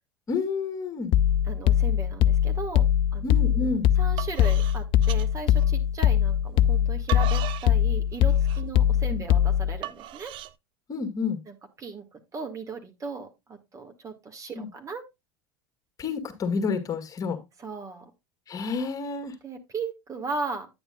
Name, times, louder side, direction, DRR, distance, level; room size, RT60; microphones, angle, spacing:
voice 1, 0.3-1.1 3.2-3.9 9.1-9.2 10.9-11.4 14.6-14.7 16.0-17.4 18.5-19.3, left 4 dB, 35° left, 1.9 m, -29 dB
sound 1, 1.1-9.8, left 10 dB, 50° left, 0.4 m, -22 dB
voice 2, 1.4-2.8 3.1-3.3 4.0-10.3 11.5-15.1 17.6-18.0 19.4-20.7, right 4 dB, 30° right, 2.0 m, -37 dB
sound 2, 3.3-3.6 4.0-6.1 6.7-10.5, right 13 dB, 50° right, 0.6 m, -38 dB
9.6 x 8.9 x 2.4 m
hypercardioid pair, 75°, 11 cm